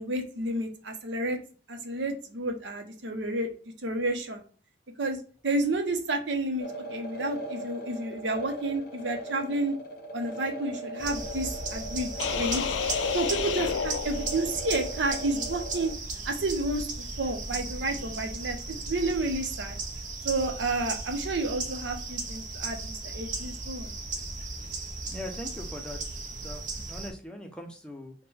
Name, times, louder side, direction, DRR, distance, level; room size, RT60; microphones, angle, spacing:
voice 1, 0.0-1.4 1.7-3.5 3.8-4.4 5.0-9.7 10.1-12.6 13.1-15.9 16.3-16.9 17.2-19.8 20.2-24.0, right 2 dB, 80° right, 4 dB, 0.7 m, -30 dB
sound 1, 6.6-15.9, right 1 dB, 50° left, 0.6 m, -39 dB
sound 2, 11.0-27.1, right 3 dB, 45° right, 0.7 m, -36 dB
sound 3, 12.2-14.8, left 8 dB, 85° left, 0.3 m, -31 dB
voice 2, 25.0-28.1, left 1 dB, 5° left, 3 dB, 0.5 m, -41 dB
3.7 x 2.2 x 4.1 m, 0.40 s
head